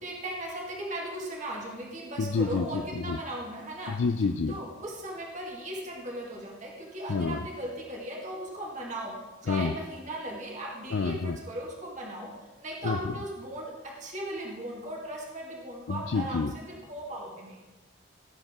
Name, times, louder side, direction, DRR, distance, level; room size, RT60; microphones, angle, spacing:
voice 1, 0.0-3.9 4.5-9.1 9.4-12.3 12.6-17.6, right 1 dB, 35° right, -2 dB, 2.0 m, -37 dB
voice 2, 2.2-2.7 3.1-3.2 3.9-4.5 7.1-7.4 9.5-9.7 10.9-11.4 12.8-13.0 15.9-16.5, left 4 dB, 75° left, 8 dB, 0.5 m, -28 dB
18.0 x 8.1 x 3.7 m, 1.2 s
head